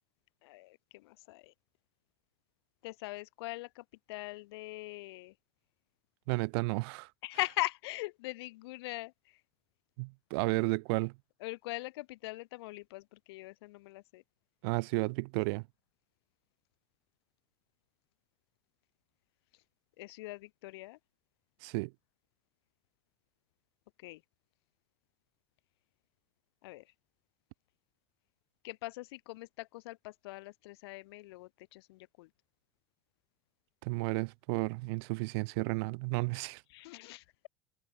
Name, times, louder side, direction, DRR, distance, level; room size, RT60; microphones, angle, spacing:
voice 1, 0.4-1.5 2.8-5.3 7.2-9.4 11.4-14.2 20.0-21.0 24.0-24.2 26.6-26.9 28.6-32.3 36.7-37.5, left 20 dB, 80° left, 1.8 m, -41 dB
voice 2, 6.3-7.1 10.0-11.1 14.6-15.6 21.6-21.9 33.8-36.6, right 29 dB, 75° right, 0.6 m, -32 dB
hypercardioid pair, 90°, 13 cm